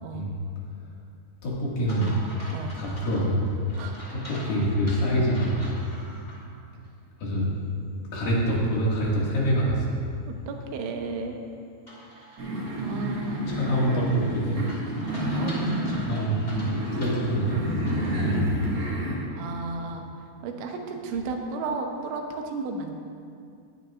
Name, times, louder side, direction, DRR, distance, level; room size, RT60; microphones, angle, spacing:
voice 1, 1.4-2.2 2.7-3.5 4.1-5.6 7.2-7.5 8.1-9.9 13.5-14.7 15.9-18.5, right 1 dB, 60° left, -6 dB, 3.4 m, -26 dB
sound 1, 1.9-6.4 6.8-6.9 11.9-18.2, left 1 dB, 30° left, 0.7 m, -44 dB
voice 2, 10.3-11.4 12.3-13.5 15.4-15.7 19.3-20.1 20.4-22.9, right 4 dB, 85° right, 3 dB, 3.3 m, -34 dB
sound 2, 12.4-19.1, right 1 dB, 45° right, 2.2 m, -30 dB
19.0 x 9.4 x 2.5 m, 2.3 s
omnidirectional pair, 5.1 m